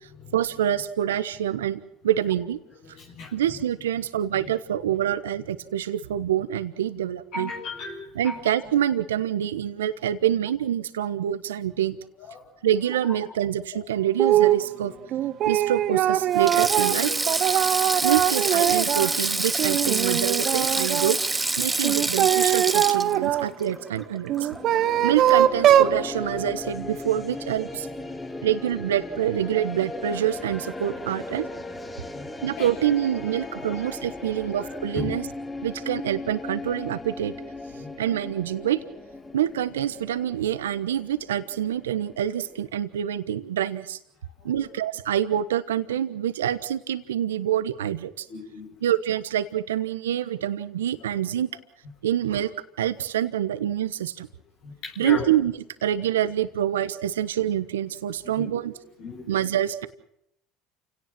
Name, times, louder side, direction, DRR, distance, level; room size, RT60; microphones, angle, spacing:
voice 1, 0.3-2.6 3.3-7.5 8.1-12.0 12.6-14.9 15.4-17.1 18.0-21.2 21.6-24.3 25.0-27.9 28.4-31.5 32.4-35.3 35.6-37.3 38.0-38.8 39.3-44.0 44.4-48.2 48.8-51.5 52.0-52.5 52.8-54.3 55.0-55.5 55.8-58.7 59.3-59.9, right 11 dB, 90° right, 13 dB, 1.2 m, -26 dB
voice 2, 2.8-3.3 7.3-8.4 12.3-12.4 13.7-13.8 14.9-15.0 16.9-17.1 32.1-32.3 32.6-32.7 33.7-33.9 34.6-35.1 37.7-37.9 44.4-44.6 48.3-48.7 54.6-55.2 58.2-58.5 59.0-59.3, left 4 dB, 65° left, -2 dB, 7.4 m, -36 dB
sound 1, 14.2-14.6 15.1-19.1 19.6-21.1 21.8-23.5 24.3-26.0, right 11 dB, 55° right, 1.3 m, -22 dB
Sink (filling or washing), 16.3-24.8 25.1-25.3 26.5-26.7, right 2 dB, 15° right, 1.1 m, -27 dB
sound 2, 24.5-42.7, left 2 dB, 20° left, 3.9 m, -37 dB
29.0 x 17.5 x 6.1 m, 0.74 s
hypercardioid pair, 80°, 0 cm